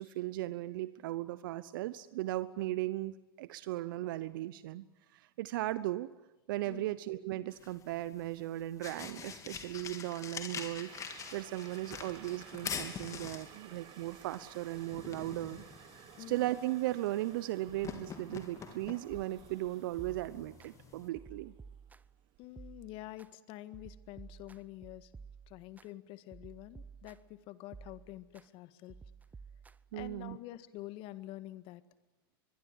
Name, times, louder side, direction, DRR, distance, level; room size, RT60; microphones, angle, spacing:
voice 1, 0.0-4.8 5.1-6.1 6.5-10.9 11.3-15.6 15.9-21.5 29.9-30.4, right 16 dB, 65° right, 15 dB, 1.0 m, -37 dB
sound 1, 7.5-21.1, left 6 dB, 25° left, 3.4 m, -46 dB
sound 2, 10.9-22.9 23.3-23.4, right 14 dB, 40° right, 1.3 m, -57 dB
sound 3, 20.0-20.7 21.1-22.2 22.6-23.3 23.7-25.9 26.3-27.4 27.7-28.5 28.9-30.3, right 5 dB, 15° right, 0.8 m, -53 dB
voice 2, 22.4-25.1 25.5-29.0 29.9-31.8, left 16 dB, 50° left, 13 dB, 1.8 m, -47 dB
23.5 x 23.0 x 9.9 m, 1.0 s
hypercardioid pair, 100°, 12 cm